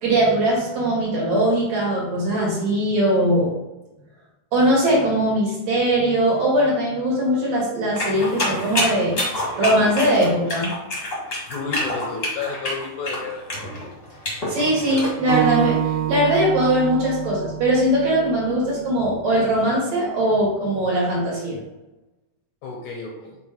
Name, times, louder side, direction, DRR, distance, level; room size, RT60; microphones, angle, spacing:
voice 1, 0.0-3.5 4.5-9.1 9.5-10.7 14.5-15.8 16.1-21.6, right 1 dB, 55° right, -5 dB, 2.7 m, -20 dB
sound 1, 8.0-15.1, left 1 dB, 30° left, 1.1 m, -27 dB
voice 2, 11.5-13.4 22.6-23.4, left 4 dB, 70° left, 0 dB, 2.0 m, -31 dB
Acoustic guitar, 15.3-18.6, right 12 dB, 85° right, 2.4 m, -26 dB
6.6 x 3.4 x 4.4 m, 1.0 s
omnidirectional pair, 4.0 m